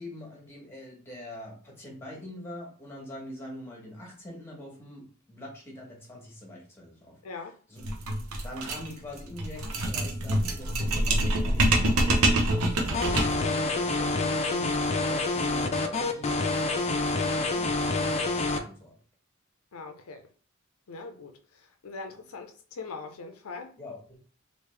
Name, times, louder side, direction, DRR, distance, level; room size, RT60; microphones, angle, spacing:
voice 1, 0.0-8.0 8.4-19.0 23.8-24.2, left 1 dB, 10° left, 1.1 m, -44 dB
voice 2, 7.2-7.6 19.7-20.2 20.9-21.3 21.8-23.7, left 4 dB, 90° left, 0.5 m, -41 dB
sound 1, 7.8-13.5, right 1 dB, 85° right, 0.7 m, -26 dB
sound 2, 12.9-18.6, left 3 dB, 30° left, 0.4 m, -27 dB
3.3 x 2.6 x 3.2 m
head